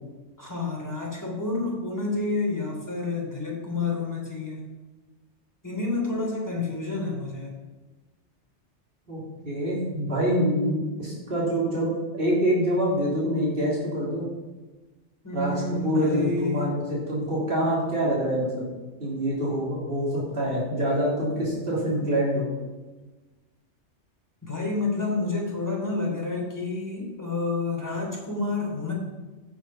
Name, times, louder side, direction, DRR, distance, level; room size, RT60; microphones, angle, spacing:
voice 1, 0.4-4.6 5.6-7.5 15.2-16.7 24.4-28.9, left 3 dB, 15° left, -1 dB, 3.2 m, -29 dB
voice 2, 9.1-14.3 15.3-18.6 19.0-22.4, equal, 50° right, -6 dB, 3.9 m, -26 dB
15.0 x 7.1 x 5.8 m, 1.2 s
omnidirectional pair, 1.2 m